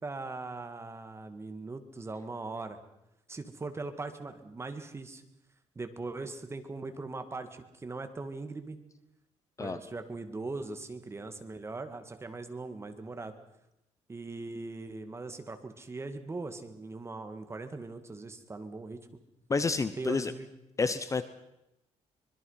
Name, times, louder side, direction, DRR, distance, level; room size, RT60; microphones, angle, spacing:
voice 1, 0.0-2.8 3.3-5.2 5.8-8.8 9.6-13.3 14.1-19.2 20.0-20.5, right 3 dB, 20° right, 8 dB, 2.0 m, -40 dB
voice 2, 19.5-20.3 20.8-21.2, left 4 dB, 25° left, 12 dB, 0.9 m, -29 dB
25.0 x 21.5 x 5.7 m, 0.86 s
cardioid pair, 140°, 13 cm